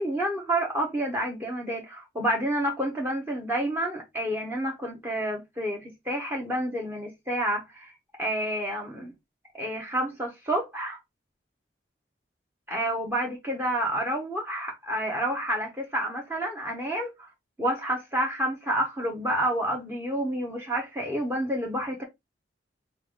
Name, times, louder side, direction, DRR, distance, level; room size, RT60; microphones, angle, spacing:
voice 1, 0.0-7.9 8.2-9.1 9.6-11.0 12.7-17.3 17.6-22.0, right 1 dB, 10° right, 1.1 m, -29 dB
5.6 x 2.6 x 3.5 m
head